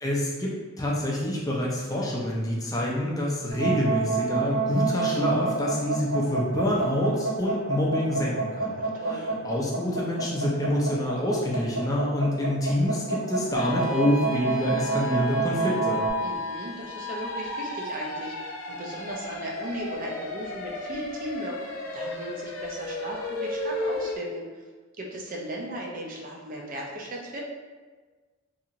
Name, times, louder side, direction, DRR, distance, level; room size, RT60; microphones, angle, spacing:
voice 1, 0.0-8.8 9.1-16.0, left 1 dB, 15° left, -3 dB, 0.4 m, -27 dB
sound 1, 3.5-16.1, right 4 dB, 60° right, 1.1 m, -28 dB
voice 2, 8.7-9.2 16.2-24.4 25.0-27.4, right 1 dB, 40° right, -2 dB, 0.5 m, -37 dB
sound 2, 13.5-24.2, left 2 dB, 75° left, 0.5 m, -34 dB
2.8 x 2.8 x 2.5 m, 1.4 s
head